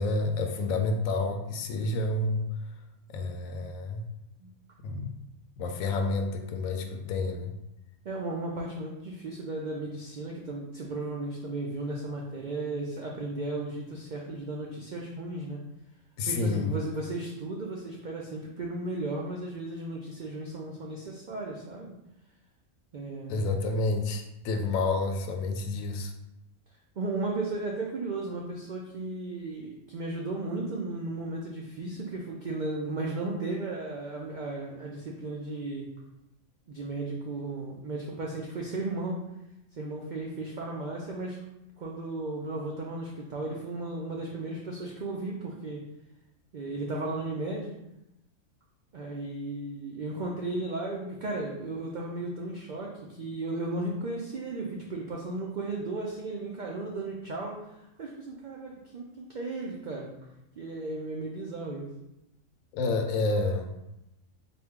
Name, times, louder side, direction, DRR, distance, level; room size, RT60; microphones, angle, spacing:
voice 1, 0.0-2.5 3.1-4.1 4.8-5.1 5.6-7.6 16.2-16.7 23.3-26.1 62.7-63.7, left 3 dB, 85° left, 5 dB, 1.0 m, -29 dB
voice 2, 8.0-15.6 16.2-22.0 22.9-23.6 27.0-35.9 36.7-39.2 39.7-41.4 41.8-45.8 46.5-47.7 48.9-60.1 60.6-61.9, right 2 dB, 75° right, -1 dB, 0.4 m, -35 dB
4.3 x 2.2 x 3.6 m, 0.88 s
omnidirectional pair, 1.4 m